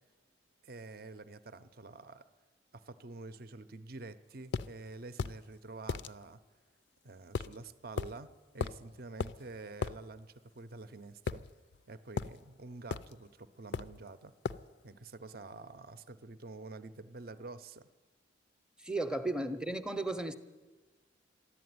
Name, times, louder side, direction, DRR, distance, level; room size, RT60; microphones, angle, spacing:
voice 1, 0.6-2.2 2.7-6.4 7.0-11.4 11.9-14.3 14.8-17.9, right 3 dB, 50° right, 13 dB, 0.6 m, -48 dB
sound 1, 4.5-4.7 5.2-5.4 5.9-6.1 7.3-7.6 8.0-8.1 8.6-8.8 9.2-9.4 9.8-10.0 11.3-11.8 12.2-12.4 12.9-13.1 13.7-14.0 14.4-14.7, left 5 dB, 60° left, 0.4 m, -36 dB
voice 2, 18.8-20.3, right 2 dB, 5° right, 9 dB, 0.6 m, -34 dB
13.5 x 11.0 x 9.4 m, 1.3 s
head